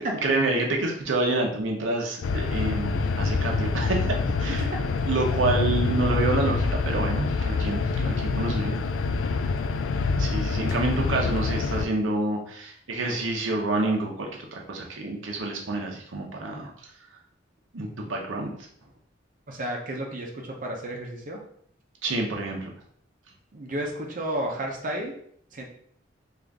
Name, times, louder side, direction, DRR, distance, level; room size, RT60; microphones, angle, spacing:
voice 1, 0.0-4.7 5.1-8.8 10.2-16.7 17.7-18.5 22.0-22.7, right 2 dB, 90° right, 0 dB, 0.7 m, -28 dB
sound 1, 2.2-11.9, left 4 dB, 80° left, 0.3 m, -26 dB
voice 2, 19.5-21.4 23.5-25.1 25.5-25.6, right 1 dB, 45° right, 0 dB, 0.6 m, -32 dB
3.8 x 2.5 x 3.4 m, 0.65 s
head